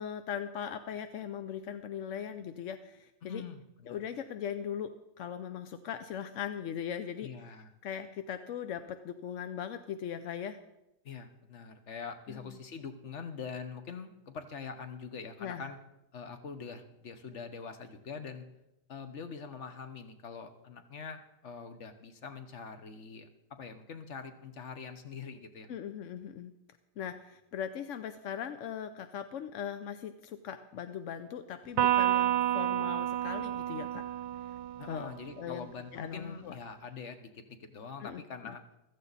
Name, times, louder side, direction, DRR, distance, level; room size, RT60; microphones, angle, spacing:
voice 1, 0.0-3.4 3.9-7.5 7.8-10.6 12.3-12.6 15.4-15.7 25.7-26.5 27.0-34.0 34.9-35.1 35.4-36.6 38.0-38.6, left 8 dB, 65° left, 9 dB, 0.8 m, -39 dB
voice 2, 3.2-4.0 7.2-7.7 11.0-15.8 16.1-18.4 18.9-25.7 27.0-27.1 34.8-38.6, left 5 dB, 45° left, 8 dB, 1.3 m, -44 dB
Electric guitar, 31.8-35.3, right 13 dB, 85° right, 1.3 m, -30 dB
15.0 x 14.0 x 4.1 m, 0.88 s
omnidirectional pair, 1.8 m